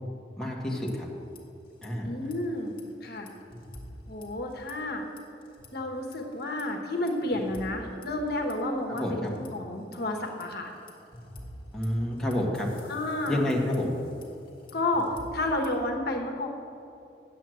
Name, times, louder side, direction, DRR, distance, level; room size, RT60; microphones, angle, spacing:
voice 1, 0.4-1.1 1.8-2.1 8.9-9.1 11.7-12.7 13.3-13.9, left 1 dB, 5° left, -4 dB, 1.4 m, -28 dB
sound 1, 0.6-1.4 1.7-1.9 2.2-4.9 5.2-5.7 6.1-9.5 9.9-15.9, left 1 dB, 30° left, 1.5 m, -48 dB
voice 2, 2.0-2.8 3.0-3.3 4.1-5.0 5.7-10.7 12.9-13.5 14.7-16.5, left 1 dB, 60° left, 2 dB, 1.2 m, -31 dB
9.1 x 7.8 x 7.6 m, 2.7 s
head